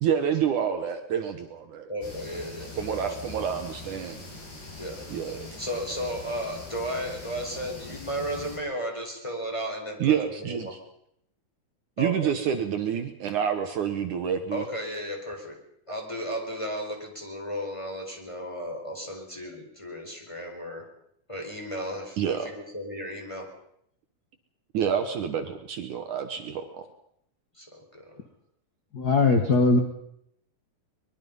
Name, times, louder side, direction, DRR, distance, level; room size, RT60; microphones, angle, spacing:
voice 1, 0.0-1.9 2.8-4.2 5.1-5.6 10.0-10.8 12.0-14.6 22.2-22.5 24.7-26.9, right 8 dB, 65° right, 7 dB, 2.4 m, -28 dB
voice 2, 1.9-3.1 4.8-5.1 5.6-10.7 12.0-12.3 14.5-15.6 15.9-20.8 21.3-23.5 27.5-28.2, equal, 10° left, 1 dB, 4.5 m, -34 dB
sound 1, 2.0-8.6, left 3 dB, 80° left, 7.7 m, -42 dB
voice 3, 28.9-29.8, left 3 dB, 55° left, 5 dB, 1.1 m, -20 dB
23.5 x 22.0 x 5.5 m, 0.73 s
omnidirectional pair, 4.3 m